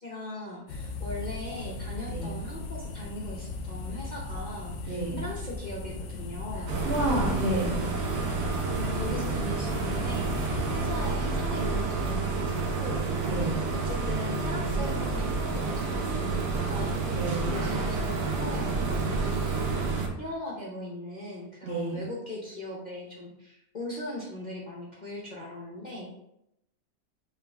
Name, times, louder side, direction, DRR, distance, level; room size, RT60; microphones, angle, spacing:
voice 1, 0.0-6.8 8.5-13.1 13.7-26.2, left 1 dB, 35° left, -6 dB, 0.8 m, -39 dB
sound 1, 0.7-10.9, left 3 dB, 65° left, 0.9 m, -37 dB
voice 2, 4.9-5.2 6.9-7.8 13.3-13.6 17.1-17.6 21.6-22.0, right 1 dB, 45° right, -5 dB, 1.4 m, -30 dB
sound 2, 6.7-20.1, right 4 dB, 80° right, 1.3 m, -29 dB
5.8 x 2.5 x 3.4 m, 0.79 s
omnidirectional pair, 1.6 m